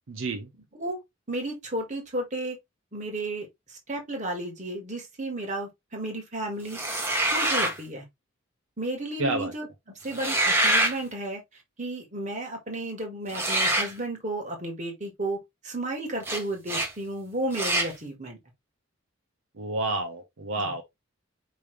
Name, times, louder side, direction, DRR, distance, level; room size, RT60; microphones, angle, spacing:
voice 1, 0.1-0.5 9.2-9.5 19.6-20.8, right 2 dB, 65° right, 0.7 m, -29 dB
voice 2, 1.3-2.6 2.9-6.8 7.3-8.0 8.8-9.7 10.0-11.4 11.8-18.4, right 1 dB, 35° right, 1.6 m, -33 dB
sound 1, 6.7-7.8 10.1-11.0 13.3-13.9 16.2-16.4 16.7-16.9 17.5-17.9, right 1 dB, 10° right, 1.0 m, -25 dB
5.0 x 3.2 x 3.1 m
head